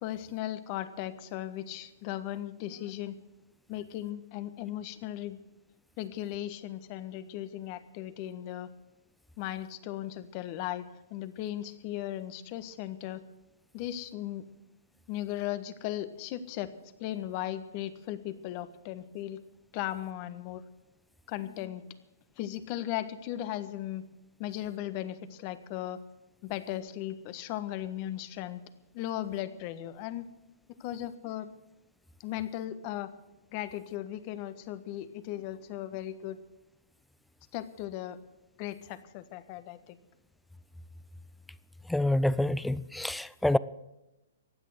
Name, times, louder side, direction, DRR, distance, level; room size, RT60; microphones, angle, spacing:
voice 1, 0.0-3.1 3.7-5.4 6.0-8.7 9.4-10.8 11.1-13.2 13.7-14.4 15.1-16.7 17.0-19.4 19.7-20.6 21.3-21.8 22.4-24.0 24.4-26.0 26.4-28.6 28.9-30.2 30.8-31.5 32.2-33.1 33.5-36.4 37.5-38.2 38.6-40.0, left 13 dB, 40° left, 13 dB, 1.3 m, -37 dB
voice 2, 41.9-43.6, left 1 dB, 5° left, 18 dB, 0.5 m, -27 dB
15.5 x 10.0 x 7.9 m, 0.95 s
hypercardioid pair, 130°, 0 cm